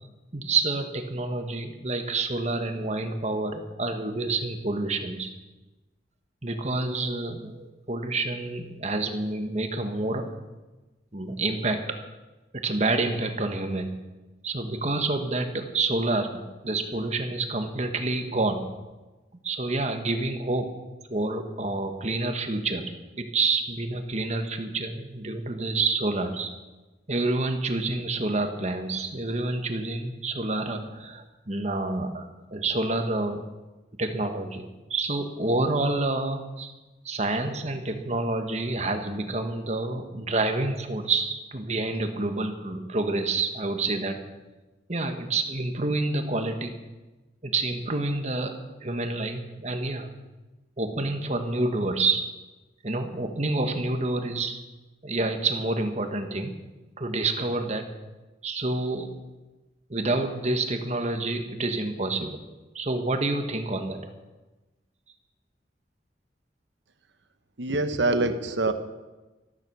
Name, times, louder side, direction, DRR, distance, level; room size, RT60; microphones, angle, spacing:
voice 1, 0.3-5.3 6.4-10.3 11.1-12.0 12.5-14.0 14.4-18.7 19.4-20.7 21.1-22.9 23.2-26.5 27.1-33.4 34.0-36.7 37.0-44.2 44.9-46.7 47.4-50.1 50.8-52.2 52.8-54.6 55.0-56.6 57.0-57.9 58.4-59.1 59.9-62.4 62.7-64.1, right 2 dB, 35° right, 6 dB, 1.3 m, -28 dB
voice 2, 67.6-68.7, right 2 dB, 75° right, 9 dB, 1.1 m, -25 dB
14.0 x 13.5 x 6.2 m, 1.1 s
head